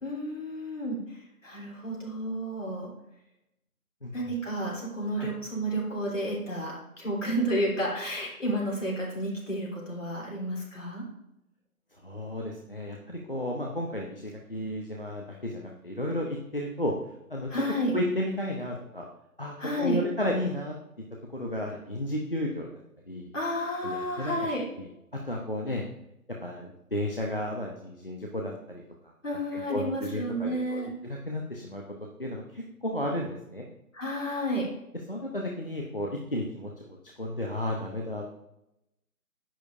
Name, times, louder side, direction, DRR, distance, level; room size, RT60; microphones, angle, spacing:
voice 1, 0.0-2.9 4.1-11.0 17.5-17.9 19.6-20.0 23.3-24.6 29.2-30.9 33.9-34.7, equal, 55° left, -4 dB, 3.2 m, -31 dB
voice 2, 12.0-16.9 17.3-17.6 17.9-19.1 19.4-20.7 21.3-22.8 23.1-23.3 23.8-24.3 24.8-24.9 25.1-25.8 26.4-28.8 29.5-31.8 32.2-33.7 35.1-38.3, left 1 dB, 40° left, -1 dB, 0.7 m, -33 dB
10.0 x 6.8 x 2.6 m, 0.86 s
figure-of-eight pair, 160°, 45 cm